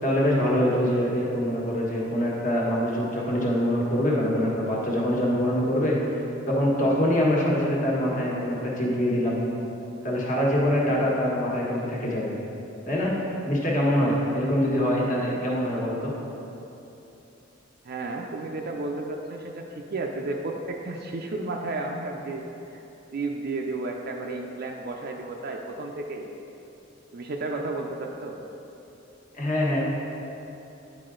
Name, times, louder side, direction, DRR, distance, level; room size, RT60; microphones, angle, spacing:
voice 1, 0.0-6.0 6.5-9.4 10.0-12.3 12.8-13.1 13.4-16.1 29.3-29.8, equal, 40° left, -4 dB, 1.4 m, -24 dB
voice 2, 17.8-22.4 22.7-22.8 23.1-26.3 27.1-28.4, right 2 dB, 50° right, 1 dB, 0.4 m, -32 dB
9.6 x 4.8 x 3.8 m, 3.0 s
head